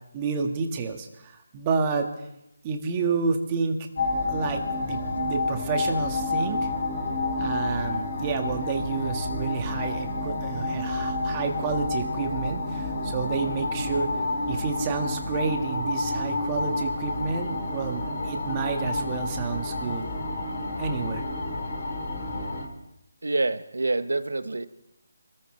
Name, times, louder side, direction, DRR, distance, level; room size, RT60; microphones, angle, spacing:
voice 1, 0.1-2.1 2.6-3.9 4.3-6.7 7.4-14.1 14.5-20.0 20.8-21.2, right 5 dB, 20° right, 4 dB, 1.7 m, -30 dB
sound 1, 4.0-22.6, left 2 dB, 55° left, 4.2 m, -29 dB
voice 2, 23.2-24.7, right 2 dB, 80° right, 12 dB, 1.0 m, -26 dB
26.0 x 14.0 x 3.3 m, 0.83 s
figure-of-eight pair, 160°, 0 cm